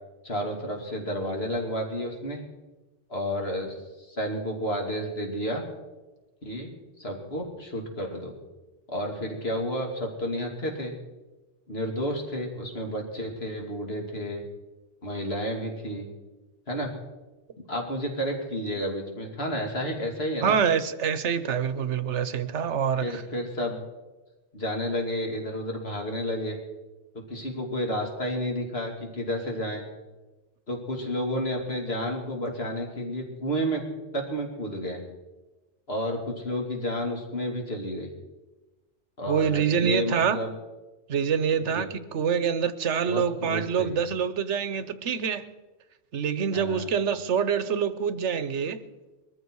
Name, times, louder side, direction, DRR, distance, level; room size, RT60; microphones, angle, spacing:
voice 1, 0.2-2.4 3.1-5.6 6.4-6.7 7.0-8.3 8.9-10.9 11.7-14.4 15.0-16.1 16.7-16.9 17.7-20.6 23.0-23.8 24.5-26.6 27.3-29.9 30.7-33.9 34.1-35.0 35.9-38.1 39.2-40.5 41.7-41.9 43.0-44.0 46.5-46.9, equal, 60° left, 2.9 m, -31 dB
voice 2, 20.4-23.2 39.3-40.4 41.1-45.4 46.1-48.8, right 7 dB, 85° right, 1.2 m, -26 dB
22.0 x 14.0 x 4.7 m
omnidirectional pair, 1.2 m